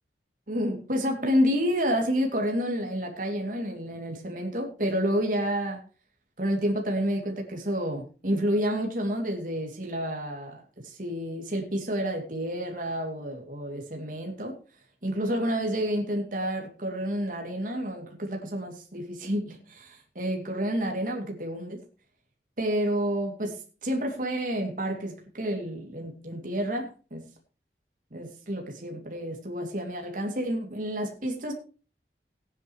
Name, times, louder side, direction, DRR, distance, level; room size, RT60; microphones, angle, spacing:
voice 1, 0.5-5.8 6.4-14.5 15.0-21.8 22.6-27.3 28.1-31.5, equal, 50° right, 2 dB, 2.7 m, -29 dB
18.0 x 9.8 x 3.1 m, 0.36 s
head